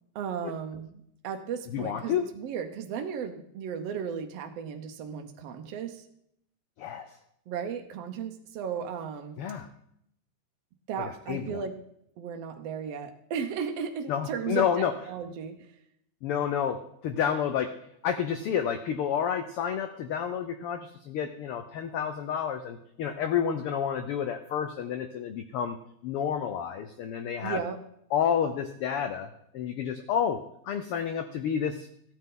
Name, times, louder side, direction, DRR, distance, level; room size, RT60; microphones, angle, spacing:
voice 1, 0.2-6.1 7.5-9.4 10.9-11.8 12.2-15.7 27.4-27.8, right 7 dB, 65° right, 4 dB, 1.8 m, -35 dB
voice 2, 1.7-2.3 6.8-7.1 9.4-9.7 11.0-11.6 14.1-14.9 16.2-17.7 18.0-25.8 26.0-27.6 28.1-31.9, left 8 dB, 80° left, 8 dB, 1.3 m, -30 dB
14.5 x 9.3 x 3.8 m, 0.73 s
omnidirectional pair, 3.3 m